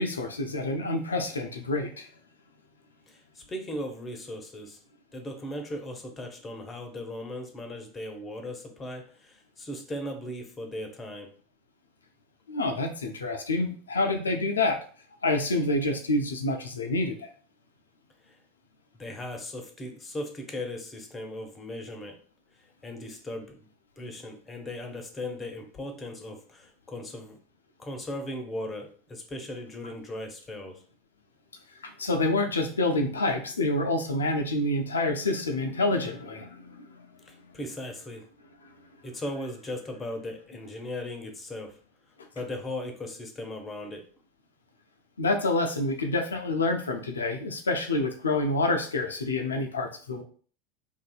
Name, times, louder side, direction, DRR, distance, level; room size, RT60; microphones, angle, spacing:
voice 1, 0.0-2.1 12.5-14.8 15.2-17.3 31.8-37.1 45.2-50.2, left 2 dB, 80° left, 5 dB, 0.4 m, -27 dB
voice 2, 3.1-4.8 5.1-11.3 18.2-18.4 18.9-22.2 22.8-23.7 24.0-27.4 27.8-30.8 37.3-38.3 39.0-41.8 42.4-44.1, left 1 dB, 20° left, 4 dB, 0.6 m, -38 dB
2.6 x 2.4 x 2.3 m, 0.43 s
figure-of-eight pair, 80°, 0 cm